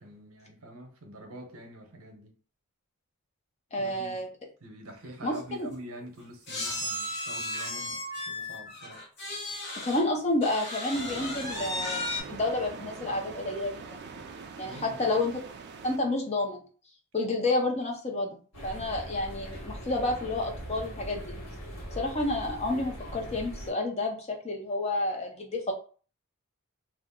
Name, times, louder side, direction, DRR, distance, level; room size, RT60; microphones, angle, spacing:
voice 1, 0.0-2.4 3.8-4.2 4.6-9.0 14.6-15.2, right 1 dB, 70° right, 0.7 m, -45 dB
voice 2, 3.7-4.3 5.2-5.3 5.6-5.7 9.8-14.3 14.6-15.4 15.8-16.6 17.1-21.3 22.0-25.7, left 2 dB, 30° left, 0.6 m, -30 dB
sound 1, 5.0-5.1 5.3-5.5 6.5-10.0 10.4-12.2, left 1 dB, 50° left, 1.0 m, -35 dB
sound 2, 10.9-16.0, right 5 dB, 50° right, 0.3 m, -43 dB
sound 3, 18.5-23.7, equal, 70° left, 1.2 m, -41 dB
2.4 x 2.0 x 3.6 m
head